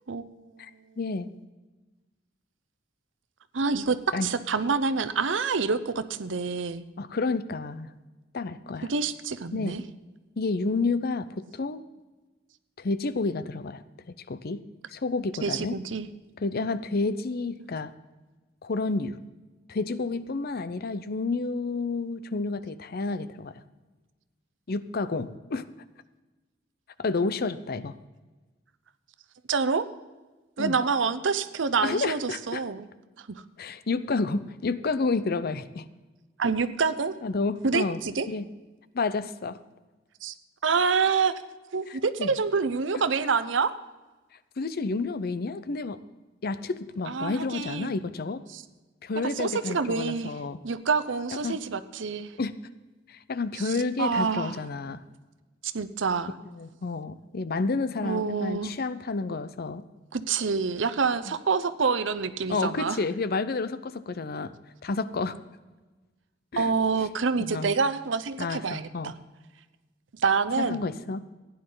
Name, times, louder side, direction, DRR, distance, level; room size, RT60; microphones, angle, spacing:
voice 1, 0.1-0.6 3.5-6.8 8.9-9.8 15.4-16.1 29.5-29.9 30.6-32.9 33.2-33.4 36.4-37.2 37.6-38.3 40.2-40.3 40.6-41.3 41.7-43.7 47.1-47.9 48.5-48.6 49.2-50.4 50.6-52.3 53.6-54.6 55.6-56.3 58.0-58.8 60.1-63.0 66.6-69.1 70.1-70.9, right 5 dB, 75° right, 12 dB, 0.7 m, -27 dB
voice 2, 1.0-1.3 4.1-4.3 7.0-7.9 8.3-8.9 9.5-9.8 10.4-11.8 12.8-13.8 14.3-14.6 14.9-15.8 16.4-17.9 18.6-19.2 19.7-23.5 24.7-25.7 27.0-28.0 30.6-30.8 31.8-32.6 33.6-35.9 37.2-38.0 38.3-38.4 38.9-39.6 41.9-42.3 44.6-46.0 46.4-48.4 49.0-50.6 51.4-51.6 52.4-52.6 53.1-55.0 56.6-59.8 62.5-64.5 64.8-65.4 66.5-66.7 67.4-67.7 68.4-69.1 70.6-71.2, left 3 dB, 55° left, 14 dB, 0.6 m, -30 dB
16.0 x 10.0 x 3.9 m, 1.2 s
head